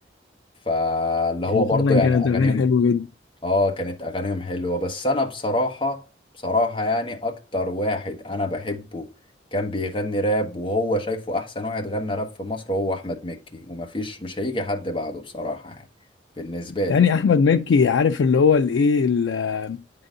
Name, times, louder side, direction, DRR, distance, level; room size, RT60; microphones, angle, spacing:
voice 1, 0.6-2.6 3.4-6.0 6.4-9.1 9.5-15.8 16.4-17.0, left 1 dB, 30° left, 1.1 m, -26 dB
voice 2, 1.5-3.1 16.9-19.8, left 5 dB, 90° left, 0.4 m, -19 dB
9.5 x 3.9 x 3.8 m
head